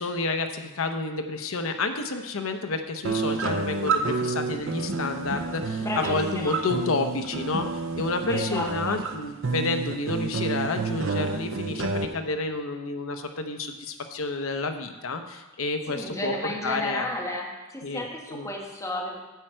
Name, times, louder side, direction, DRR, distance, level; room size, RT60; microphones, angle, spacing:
voice 1, 0.0-7.7 7.9-17.1 17.8-18.5, left 3 dB, 80° left, 6 dB, 0.8 m, -30 dB
sound 1, 3.0-12.0, right 4 dB, 65° right, 0.7 m, -29 dB
voice 2, 5.8-6.6 8.3-9.0 15.9-19.2, left 1 dB, 15° left, -1 dB, 1.5 m, -33 dB
9.3 x 4.5 x 7.6 m, 1.1 s
head